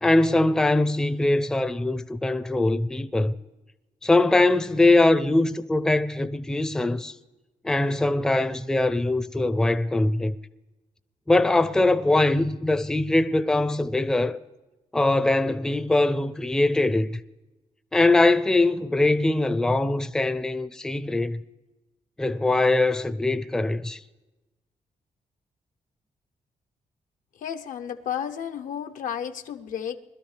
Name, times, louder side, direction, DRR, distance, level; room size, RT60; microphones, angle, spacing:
voice 1, 0.0-3.4 4.0-7.2 7.6-10.3 11.3-14.4 14.9-17.2 17.9-21.4 22.2-24.0, left 2 dB, 5° left, 0.4 m, -22 dB
voice 2, 27.4-30.0, left 9 dB, 80° left, 0.8 m, -32 dB
21.0 x 13.0 x 3.3 m
wide cardioid pair, 145°, 13 cm